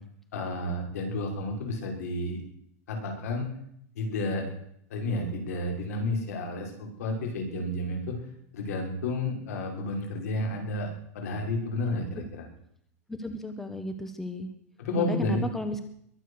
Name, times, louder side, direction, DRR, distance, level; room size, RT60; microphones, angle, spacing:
voice 1, 0.3-2.4 2.9-3.5 4.0-4.5 4.9-8.2 8.5-10.9 11.1-12.5 14.8-15.5, left 2 dB, 75° left, 2 dB, 5.8 m, -31 dB
voice 2, 13.1-14.5 15.0-15.8, left 1 dB, 5° left, 8 dB, 0.9 m, -34 dB
22.0 x 8.9 x 6.5 m, 0.70 s
supercardioid pair, 170°, 8 cm